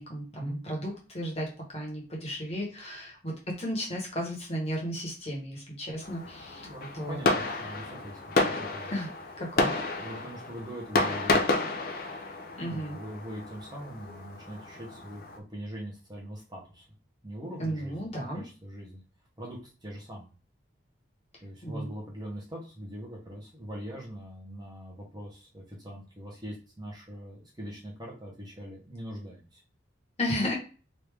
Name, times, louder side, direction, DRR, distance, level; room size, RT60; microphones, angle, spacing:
voice 1, 0.0-6.7 6.9-7.2 8.9-9.1 9.4-9.7 12.6-13.0 17.6-18.4 21.3-21.9 30.2-30.5, equal, 30° left, -2 dB, 1.1 m, -34 dB
Fireworks, 6.0-15.4, left 2 dB, 50° left, 0.5 m, -31 dB
voice 2, 6.4-8.2 8.5-8.9 10.0-11.7 12.6-16.8 17.2-19.0 19.4-20.3 21.4-29.6, equal, 20° right, -3 dB, 1.0 m, -42 dB
3.2 x 2.6 x 3.4 m, 0.36 s
head